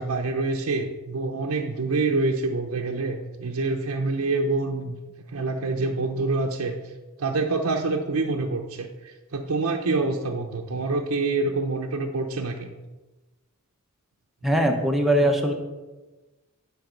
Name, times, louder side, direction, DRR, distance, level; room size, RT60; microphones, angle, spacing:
voice 1, 0.0-5.0 5.3-12.7, right 3 dB, 85° right, 2 dB, 0.7 m, -26 dB
voice 2, 14.4-15.5, right 1 dB, ahead, 2 dB, 0.9 m, -21 dB
11.0 x 4.9 x 5.1 m, 1.2 s
head